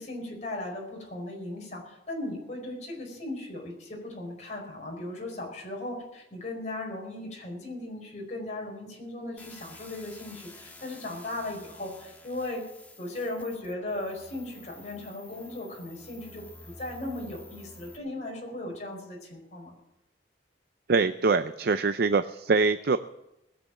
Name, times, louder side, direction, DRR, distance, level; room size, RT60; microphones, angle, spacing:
voice 1, 0.0-12.6 13.0-19.7, left 2 dB, 40° left, 0 dB, 5.0 m, -37 dB
sound 1, 9.4-18.0, left 2 dB, 10° left, 1.5 m, -50 dB
voice 2, 20.9-23.0, right 4 dB, 60° right, 11 dB, 0.5 m, -24 dB
20.0 x 7.8 x 7.3 m, 0.88 s
head